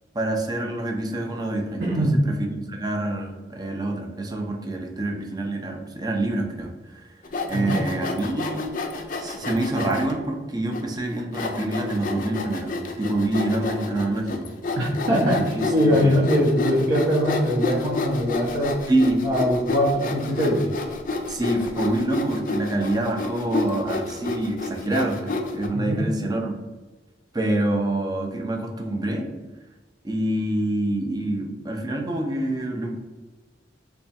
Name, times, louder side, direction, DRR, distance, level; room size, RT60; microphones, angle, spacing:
voice 1, 0.1-7.1 7.5-8.7 9.2-14.5 15.3-15.4 15.8-16.2 18.9-19.2 21.3-26.5 27.3-29.3 30.0-33.0, right 1 dB, 20° right, 2 dB, 0.5 m, -26 dB
voice 2, 1.8-2.2 7.5-7.8 14.8-15.4 15.7-18.8 19.2-20.7 25.7-26.1, equal, 60° right, -7 dB, 0.9 m, -22 dB
Sawing, 7.2-10.1 10.7-10.8 11.3-25.7, left 3 dB, 45° left, 0.4 m, -30 dB
3.4 x 2.3 x 4.1 m, 1.3 s
head